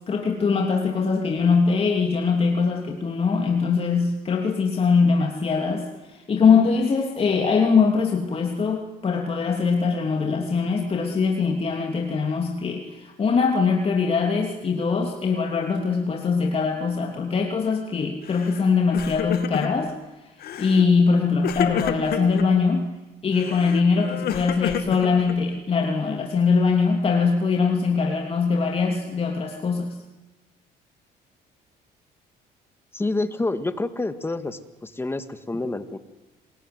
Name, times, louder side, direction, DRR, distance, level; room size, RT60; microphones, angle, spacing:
voice 1, 0.1-19.9 20.6-22.8 23.2-30.0, left 5 dB, 35° left, 2 dB, 2.9 m, -22 dB
Crying sobbing, 18.3-18.6 18.9-19.9 20.4-20.9 21.4-22.5 23.3-25.6, left 9 dB, 65° left, 2.3 m, -29 dB
voice 2, 32.9-36.0, left 2 dB, 15° left, 10 dB, 1.8 m, -28 dB
27.0 x 21.0 x 9.6 m, 1.1 s
cardioid pair, 110°, 17 cm